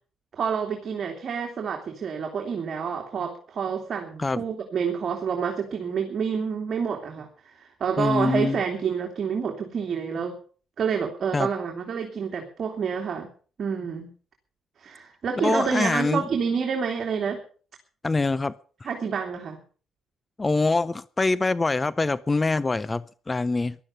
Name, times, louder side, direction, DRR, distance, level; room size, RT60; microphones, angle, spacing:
voice 1, 0.3-10.4 10.8-13.3 13.6-14.1 14.8-17.4 18.8-19.6, right 6 dB, 50° right, 2.8 m, -28 dB
voice 2, 8.0-8.6 11.3-11.5 15.4-16.3 18.0-18.5 20.4-23.8, left 3 dB, 25° left, 0.6 m, -24 dB
15.5 x 12.0 x 5.6 m
cardioid pair, 90°, 0 cm